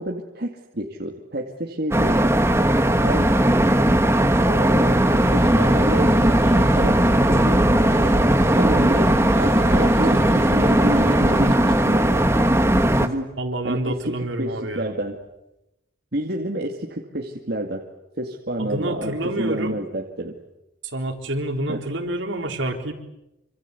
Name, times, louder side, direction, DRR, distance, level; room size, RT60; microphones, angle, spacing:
voice 1, 0.0-2.3 3.0-3.4 4.5-7.0 7.3-7.6 8.0-8.2 8.6-9.1 9.4-12.3 13.0-13.3 13.6-15.2 16.1-17.8 18.1-20.3 21.7-21.8, right 1 dB, 50° right, 1 dB, 2.2 m, -29 dB
sound 1, 1.9-13.1, right 1 dB, 15° right, 1.5 m, -18 dB
sound 2, 4.8-11.5, right 2 dB, 85° right, 1.3 m, -30 dB
voice 2, 13.4-14.9 18.6-19.8 20.8-22.9, right 1 dB, 70° right, 4 dB, 4.1 m, -28 dB
27.0 x 26.0 x 8.2 m, 0.90 s
head